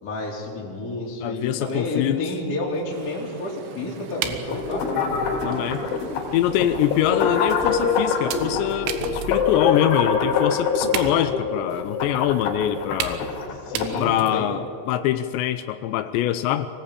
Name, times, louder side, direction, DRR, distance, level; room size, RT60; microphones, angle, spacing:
voice 1, 0.0-5.3 13.6-14.6, left 2 dB, 20° left, -3 dB, 3.8 m, -30 dB
voice 2, 1.2-2.2 5.4-5.9 6.3-13.2 14.0-16.7, left 12 dB, 85° left, 9 dB, 2.5 m, -24 dB
sound 1, 1.2-1.3 1.5-3.4 4.2-4.8 5.5-5.7 6.1-6.2 6.9-7.0 7.6-7.9 8.3-9.6 10.0-10.1 10.3-10.5 10.9-11.5 12.4-12.5 13.0-13.4 13.7-14.5, right 9 dB, 85° right, 4.0 m, -33 dB
sound 2, 2.9-8.6, right 7 dB, 65° right, 2.6 m, -42 dB
sound 3, 4.5-14.1, left 5 dB, 65° left, 4.9 m, -25 dB
24.5 x 18.5 x 8.6 m, 2.6 s
omnidirectional pair, 5.9 m